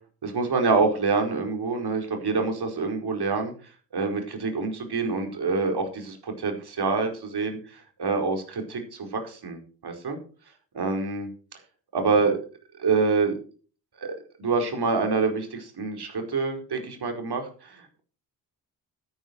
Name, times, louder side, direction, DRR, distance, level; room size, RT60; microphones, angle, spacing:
voice 1, 0.2-3.5 3.9-10.2 10.7-11.3 11.9-12.4 12.8-13.4 14.0-18.0, right 4 dB, 55° right, 4 dB, 4.7 m, -26 dB
12.5 x 11.0 x 4.6 m, 0.39 s
hypercardioid pair, 40°, 47 cm